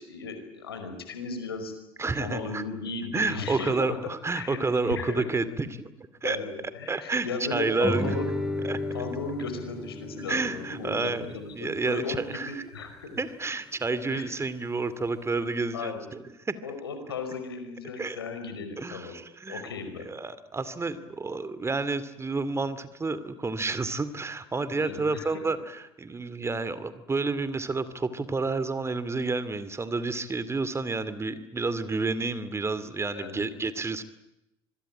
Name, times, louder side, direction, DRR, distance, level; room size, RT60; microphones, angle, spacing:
voice 1, 0.0-1.7 2.2-4.0 4.3-5.3 6.2-8.3 8.9-12.2 12.4-13.2 13.4-13.5 14.1-14.4 15.7-16.1 16.6-19.1 19.5-20.0 24.7-25.3 33.1-33.5, left 4 dB, 85° left, 7 dB, 5.1 m, -36 dB
voice 2, 2.0-2.6 3.1-5.7 6.0-6.4 6.9-8.1 8.6-8.8 10.3-11.2 11.5-12.6 13.2-16.6 18.0-18.2 18.8-19.7 20.1-34.0, right 3 dB, 20° right, 15 dB, 2.5 m, -30 dB
Guitar, 7.8-12.9, left 1 dB, 5° right, 4.6 m, -35 dB
26.0 x 22.0 x 9.0 m, 0.93 s
hypercardioid pair, 65°, 12 cm